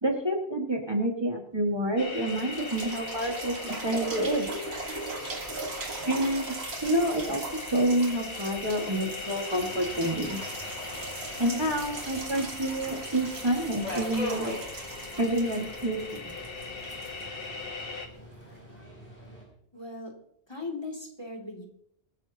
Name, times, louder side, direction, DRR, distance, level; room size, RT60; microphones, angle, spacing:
voice 1, 0.0-4.5 6.0-10.4 11.4-14.5 15.2-16.2, right 1 dB, 25° right, 0 dB, 2.0 m, -28 dB
sound 1, 1.7-1.8 2.2-17.9 18.6-18.7, right 2 dB, 85° right, 2.1 m, -40 dB
sound 2, 2.0-18.1, left 4 dB, 65° left, 1.6 m, -40 dB
Subway metro underground, 9.6-19.4, left 1 dB, 40° left, 6.4 m, -43 dB
voice 2, 19.7-20.1 20.5-21.6, left 3 dB, 25° left, 1 dB, 2.7 m, -38 dB
26.0 x 9.7 x 2.9 m, 0.68 s
omnidirectional pair, 1.0 m